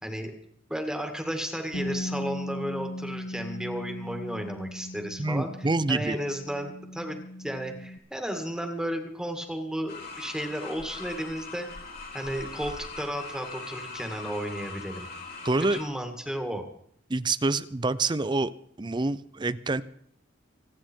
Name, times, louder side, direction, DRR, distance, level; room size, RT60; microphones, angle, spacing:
voice 1, 0.7-11.7 12.1-15.1 15.6-16.6, equal, 5° right, 4 dB, 1.9 m, -33 dB
Bass guitar, 1.7-8.0, left 1 dB, 85° left, 1.6 m, -38 dB
voice 2, 5.2-6.2 15.4-15.8 17.1-18.5 18.8-19.8, right 3 dB, 25° right, 16 dB, 0.5 m, -26 dB
sound 1, 9.9-15.8, left 3 dB, 55° left, 3.8 m, -41 dB
26.0 x 9.8 x 4.5 m, 0.67 s
head